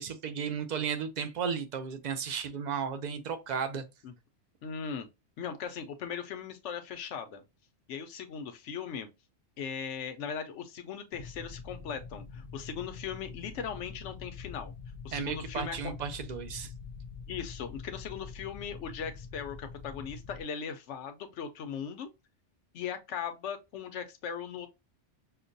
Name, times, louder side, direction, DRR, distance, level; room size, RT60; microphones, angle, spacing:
voice 1, 0.0-3.8 15.1-16.7, right 6 dB, 50° right, 0.6 m, -34 dB
voice 2, 4.6-5.1 5.4-7.4 7.9-9.1 9.6-14.7 15.0-15.9 17.3-22.1 22.7-24.7, left 7 dB, 80° left, 0.9 m, -39 dB
sound 1, 11.1-20.4, left 5 dB, 50° left, 0.7 m, -45 dB
5.7 x 2.2 x 2.6 m
omnidirectional pair, 1.2 m